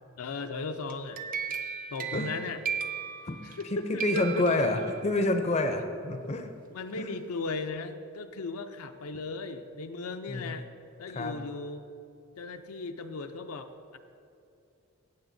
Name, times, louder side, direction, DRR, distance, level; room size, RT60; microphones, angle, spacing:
voice 1, 0.2-1.2 1.9-2.6 3.4-4.6 6.7-10.7 11.0-11.8 12.4-14.0, left 3 dB, 85° left, 7 dB, 0.5 m, -37 dB
sound 1, 0.9-3.7 4.0-5.3, right 7 dB, 40° right, 0.4 m, -36 dB
voice 2, 3.7-6.5 7.0-7.1 10.3-10.5 11.1-11.4, left 2 dB, 30° left, 6 dB, 0.5 m, -28 dB
15.0 x 8.0 x 2.7 m, 2.6 s
head